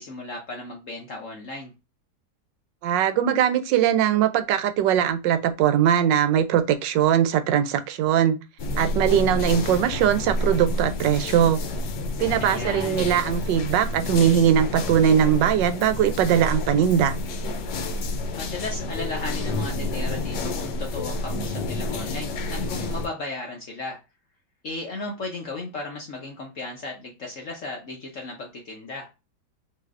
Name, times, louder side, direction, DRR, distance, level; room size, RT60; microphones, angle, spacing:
voice 1, 0.0-1.7 12.4-13.1 18.4-24.0 24.6-29.1, left 3 dB, 55° left, 1.0 m, -35 dB
voice 2, 2.8-8.4 8.8-11.6 12.2-17.1, right 9 dB, 85° right, 1.3 m, -21 dB
sound 1, 8.6-23.1, left 2 dB, 75° left, 1.3 m, -29 dB
5.8 x 2.7 x 2.4 m
omnidirectional pair, 1.9 m